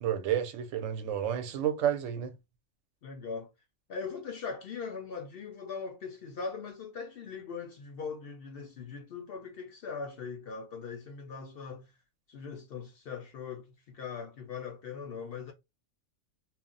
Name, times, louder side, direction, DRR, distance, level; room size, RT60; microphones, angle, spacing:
voice 1, 0.0-2.3, right 10 dB, 75° right, 0.9 m, -30 dB
voice 2, 3.0-3.5 3.9-11.9 12.3-15.5, left 5 dB, 60° left, 0.6 m, -40 dB
2.3 x 2.0 x 3.7 m
omnidirectional pair, 1.3 m